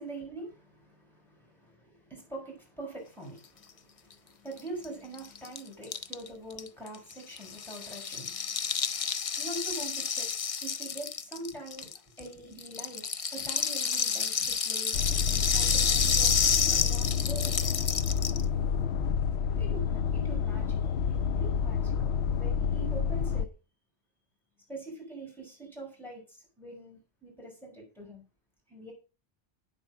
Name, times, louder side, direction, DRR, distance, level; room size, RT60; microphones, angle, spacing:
voice 1, 0.0-10.3 10.6-11.9 12.2-17.7 19.6-23.5 24.7-28.2 28.7-28.9, right 2 dB, ahead, -1 dB, 6.2 m, -44 dB
Rattle (instrument), 4.6-4.7 4.8-4.9 5.1-12.3 12.6-18.4, left 6 dB, 40° left, 0.6 m, -30 dB
sound 1, 14.9-23.5, left 7 dB, 80° left, 0.9 m, -29 dB
9.0 x 7.8 x 6.3 m, 0.32 s
omnidirectional pair, 1.1 m